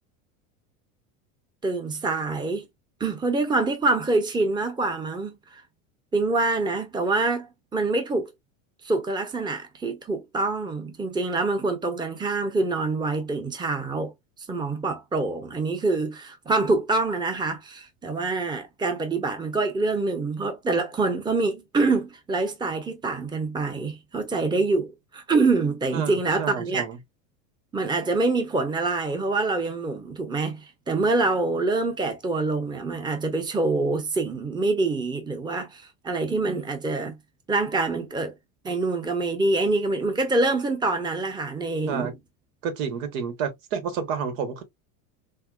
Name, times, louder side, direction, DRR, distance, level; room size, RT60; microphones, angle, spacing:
voice 1, 1.6-2.7 3.0-5.6 6.1-8.3 8.8-14.1 14.4-26.9 27.7-37.2 37.5-38.3 38.6-42.1, right 3 dB, 10° right, 0.8 m, -25 dB
voice 2, 25.9-27.0 41.9-42.1 42.6-44.6, right 6 dB, 70° right, 1.3 m, -30 dB
5.4 x 2.1 x 2.4 m
supercardioid pair, 110°, 41 cm